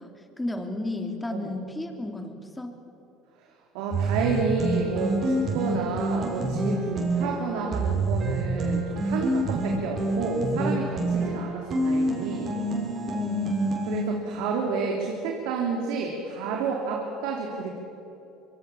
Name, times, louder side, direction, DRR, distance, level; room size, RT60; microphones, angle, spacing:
voice 1, 0.0-2.7 13.1-13.6, left 2 dB, 10° left, 4 dB, 3.7 m, -33 dB
voice 2, 3.4-12.5 13.9-17.7, right 4 dB, 75° right, 0 dB, 3.3 m, -30 dB
sound 1, 3.9-14.0, right 1 dB, 45° right, 6.7 m, -27 dB
25.5 x 23.0 x 7.4 m, 2.9 s
supercardioid pair, 85°, 0 cm